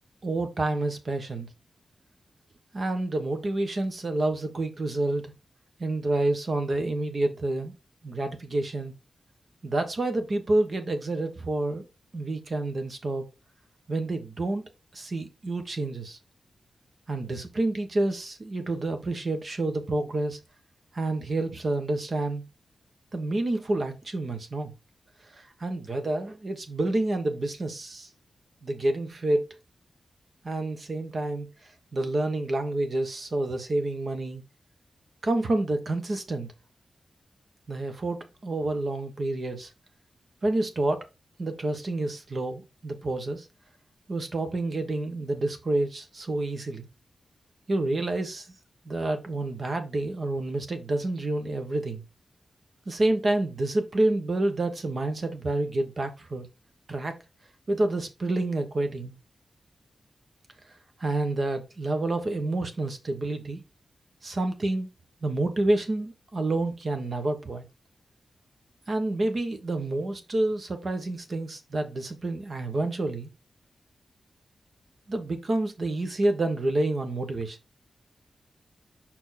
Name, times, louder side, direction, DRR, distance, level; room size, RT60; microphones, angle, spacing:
voice 1, 0.2-1.5 2.7-5.3 5.8-7.7 8.0-8.9 9.6-11.8 12.1-13.2 13.9-14.6 14.9-16.2 17.1-20.4 20.9-22.4 23.1-24.7 25.2-28.1 28.6-29.5 30.4-31.5 31.9-34.4 35.2-36.5 37.7-39.7 40.4-41.1 41.4-43.5 44.1-46.9 47.7-48.5 48.8-52.0 52.9-56.4 56.9-57.2 57.7-59.1 61.0-63.6 64.2-64.9 65.2-67.6 68.9-73.3 75.1-77.6, right 2 dB, 40° right, 1.2 m, -28 dB
5.8 x 4.5 x 4.1 m
wide cardioid pair, 165°, 0 cm